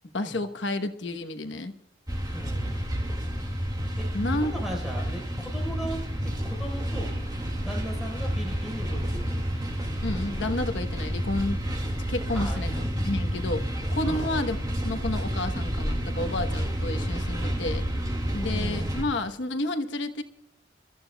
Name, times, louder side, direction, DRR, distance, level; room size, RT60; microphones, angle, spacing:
voice 1, 0.1-1.7 4.1-4.5 10.0-11.6 12.1-12.7 13.0-17.8 18.3-20.2, left 2 dB, 70° left, 7 dB, 1.1 m, -30 dB
sound 1, 2.1-19.0, equal, 20° right, 2.0 m, -30 dB
voice 2, 2.3-2.9 4.0-4.1 4.3-6.0 6.2-7.2 7.5-9.4 12.3-12.9 14.0-14.4 18.4-19.0, equal, ahead, -1 dB, 4.3 m, -38 dB
sound 2, 4.2-12.4, right 1 dB, 40° right, 5.4 m, -53 dB
29.0 x 13.5 x 2.3 m, 0.82 s
head